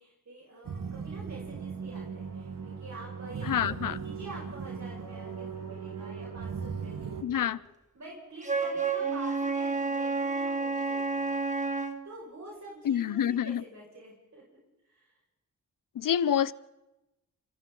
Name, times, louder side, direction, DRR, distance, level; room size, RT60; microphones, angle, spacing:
voice 1, 0.0-7.5 7.9-14.6 14.9-15.1, right 2 dB, 60° right, -3 dB, 6.1 m, -47 dB
sound 1, 0.6-7.2, right 6 dB, 85° right, 1.7 m, -38 dB
voice 2, 3.4-4.0 7.2-7.6 12.8-13.6 16.0-16.5, left 9 dB, 80° left, 18 dB, 0.7 m, -27 dB
Wind instrument woodwind instrument, 8.4-12.0, right 4 dB, 25° right, 1.9 m, -30 dB
27.5 x 27.5 x 4.0 m, 0.98 s
wide cardioid pair, 80°, 32 cm